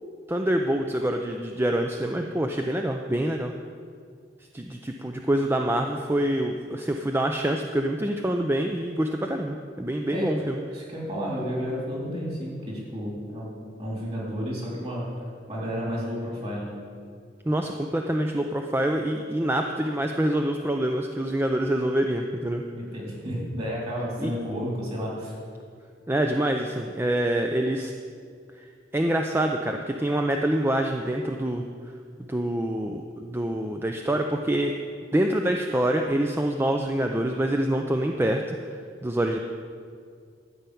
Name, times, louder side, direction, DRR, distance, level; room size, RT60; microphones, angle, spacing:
voice 1, 0.3-3.5 4.5-10.6 17.5-22.6 24.2-24.3 26.1-27.9 28.9-31.6 32.3-34.7 35.1-38.6 39.0-39.4, right 1 dB, 15° right, 3 dB, 0.4 m, -26 dB
voice 2, 10.7-15.1 15.5-16.7 22.7-25.4, equal, 35° right, -5 dB, 3.5 m, -32 dB
12.5 x 5.7 x 8.4 m, 2.2 s
head